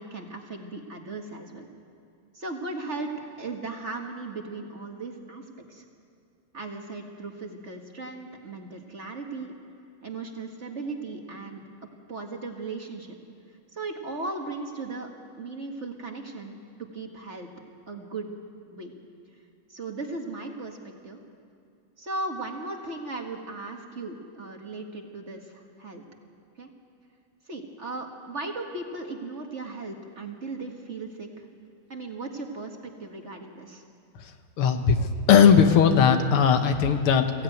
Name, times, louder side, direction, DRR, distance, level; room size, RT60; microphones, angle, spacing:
voice 1, 0.0-1.7 2.3-5.8 6.5-9.5 10.0-11.6 12.1-13.2 13.7-17.5 17.9-18.3 18.7-18.9 19.7-20.8 21.0-21.2 22.0-26.0 26.6-26.7 27.5-31.5 31.9-33.8, right 3 dB, 35° right, 2 dB, 1.8 m, -37 dB
voice 2, 34.6-37.3, left 7 dB, 90° left, 7 dB, 2.1 m, -19 dB
22.5 x 16.0 x 9.2 m, 2.4 s
omnidirectional pair, 2.3 m